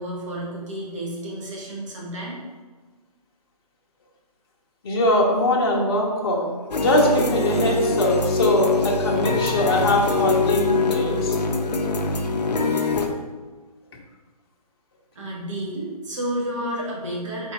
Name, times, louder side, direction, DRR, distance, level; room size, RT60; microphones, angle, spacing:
voice 1, 0.0-2.4 15.1-17.5, right 1 dB, 50° right, -3 dB, 1.4 m, -31 dB
voice 2, 4.8-11.4, left 1 dB, 35° left, -1 dB, 0.7 m, -22 dB
sound 1, 6.7-13.1, left 3 dB, 80° left, 0.6 m, -23 dB
4.3 x 3.8 x 2.9 m, 1.3 s
figure-of-eight pair, 150°, 21 cm